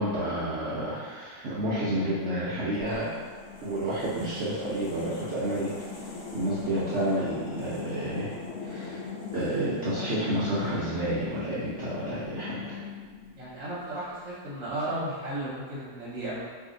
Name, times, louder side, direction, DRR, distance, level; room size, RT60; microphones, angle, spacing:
voice 1, 0.0-3.1 3.6-8.4 8.6-9.0 9.3-12.8, right 1 dB, 90° right, -9 dB, 0.6 m, -30 dB
sound 1, 2.7-13.8, left 4 dB, 70° left, 0.7 m, -40 dB
voice 2, 13.4-16.4, right 1 dB, 55° right, -8 dB, 1.0 m, -34 dB
2.7 x 2.7 x 3.7 m, 1.5 s
omnidirectional pair, 2.0 m